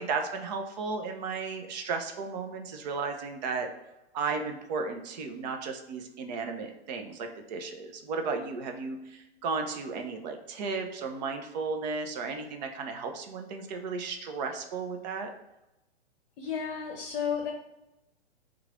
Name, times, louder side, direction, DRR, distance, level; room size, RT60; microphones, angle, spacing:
voice 1, 0.0-3.7 4.1-15.3, right 4 dB, 40° right, 5 dB, 0.6 m, -34 dB
voice 2, 16.4-17.5, left 7 dB, 55° left, 1 dB, 0.7 m, -32 dB
3.1 x 2.4 x 3.6 m, 0.93 s
hypercardioid pair, 115°, 32 cm